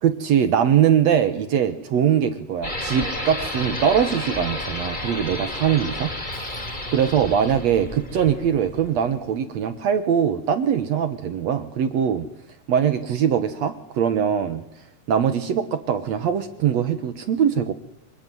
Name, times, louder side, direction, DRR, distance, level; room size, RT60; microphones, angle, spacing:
voice 1, 0.0-6.1 6.9-12.3 12.7-14.7 15.1-17.7, right 8 dB, 60° right, 10 dB, 2.0 m, -22 dB
sound 1, 2.6-9.3, left 1 dB, 15° left, 3.1 m, -31 dB
Shatter, 6.3-7.4, left 3 dB, 70° left, 8.1 m, -54 dB
26.0 x 20.5 x 9.4 m, 0.81 s
omnidirectional pair, 4.0 m